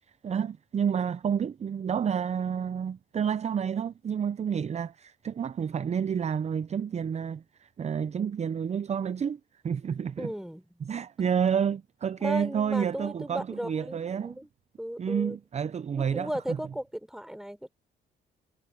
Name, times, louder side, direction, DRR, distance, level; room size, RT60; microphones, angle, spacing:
voice 1, 0.2-9.4 9.6-10.3 10.8-14.4 15.0-16.6, right 7 dB, 35° right, 0.5 m, -29 dB
voice 2, 10.2-10.6 12.2-14.5 14.8-15.4 16.0-17.7, equal, ahead, 3.6 m, -36 dB
cardioid pair, 90°, 20 cm